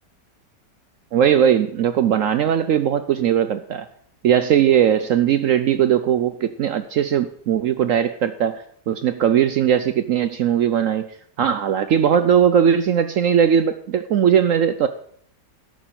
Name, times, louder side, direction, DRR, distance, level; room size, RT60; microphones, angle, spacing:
voice 1, 1.1-3.9 4.2-11.1 11.4-14.9, right 9 dB, 70° right, 10 dB, 0.8 m, -19 dB
13.0 x 6.3 x 7.4 m, 0.63 s
omnidirectional pair, 1.9 m